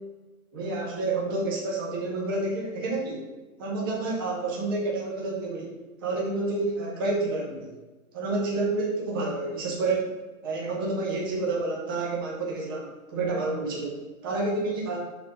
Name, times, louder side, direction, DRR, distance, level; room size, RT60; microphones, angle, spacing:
voice 1, 0.5-3.3 3.6-7.7 8.1-10.2 10.4-15.0, right 2 dB, 15° right, -3 dB, 0.9 m, -29 dB
11.5 x 4.0 x 3.9 m, 1.2 s
hypercardioid pair, 175°, 42 cm